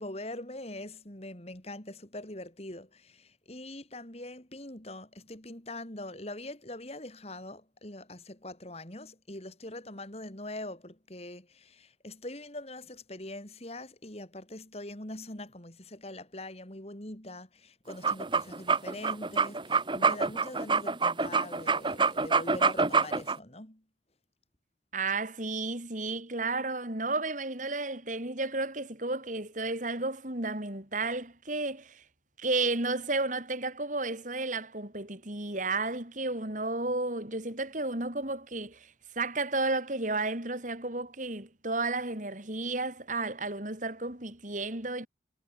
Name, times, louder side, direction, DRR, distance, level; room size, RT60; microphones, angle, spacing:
voice 1, 0.0-23.8, left 1 dB, 35° left, 3.2 m, -43 dB
sound 1, 17.9-23.4, right 4 dB, 25° right, 1.3 m, -26 dB
voice 2, 24.9-32.0 32.4-45.1, right 3 dB, 45° right, 3.5 m, -32 dB
head